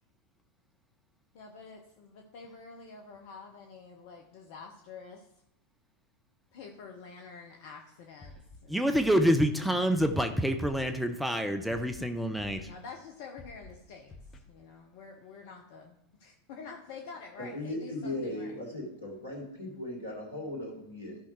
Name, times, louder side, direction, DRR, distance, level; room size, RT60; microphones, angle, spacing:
voice 1, 1.3-5.3 6.5-8.8 12.7-14.1 14.5-18.6, left 5 dB, 50° left, 2 dB, 1.0 m, -48 dB
Scratching (performance technique), 8.2-8.6 8.9-9.2 9.9-10.2 10.6-10.9 11.7-12.0 12.4-12.7 13.4-13.7 14.1-14.4, left 2 dB, 20° left, 1.3 m, -49 dB
voice 2, 8.7-12.7, equal, ahead, 7 dB, 0.6 m, -27 dB
voice 3, 17.4-21.2, left 1 dB, 80° left, -1 dB, 2.8 m, -37 dB
14.5 x 5.7 x 3.2 m, 0.84 s
figure-of-eight pair, 90°, 0 cm